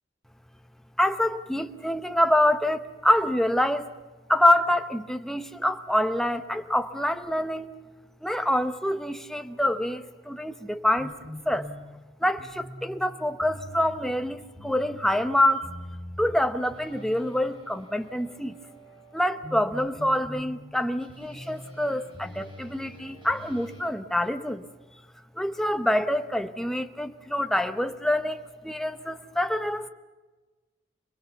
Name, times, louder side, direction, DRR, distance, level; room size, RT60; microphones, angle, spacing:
voice 1, 1.0-3.9 4.3-7.7 8.2-11.1 11.5-11.7 12.2-15.6 16.2-18.6 19.1-24.6 25.4-29.9, left 1 dB, ahead, 8 dB, 0.9 m, -26 dB
sound 1, 11.0-23.8, left 1 dB, 25° right, 6.5 m, -44 dB
26.0 x 21.5 x 7.1 m, 1.3 s
head